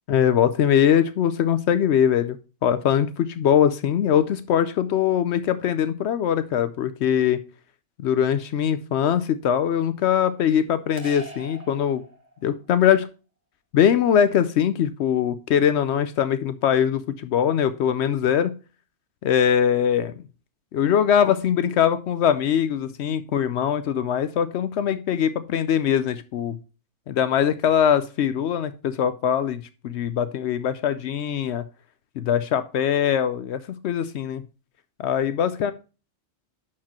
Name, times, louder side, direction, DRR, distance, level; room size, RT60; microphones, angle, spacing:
voice 1, 0.1-2.4 2.6-7.4 8.0-12.0 12.4-13.1 13.7-18.5 19.2-20.2 20.7-26.6 27.1-31.6 32.2-34.4 35.0-35.7, left 9 dB, 80° left, 12 dB, 0.9 m, -22 dB
sound 1, 11.0-12.6, right 1 dB, 40° right, 1.6 m, -42 dB
11.5 x 4.8 x 2.9 m, 0.32 s
omnidirectional pair, 1.2 m